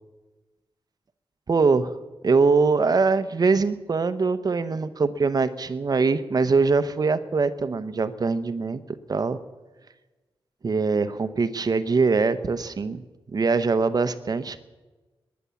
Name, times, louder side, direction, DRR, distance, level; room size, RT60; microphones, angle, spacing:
voice 1, 1.5-1.9 2.2-8.8 9.1-9.4 10.6-13.0 13.3-14.6, right 4 dB, 40° right, 12 dB, 0.8 m, -22 dB
19.5 x 10.5 x 7.0 m, 1.2 s
wide cardioid pair, 160°, 10 cm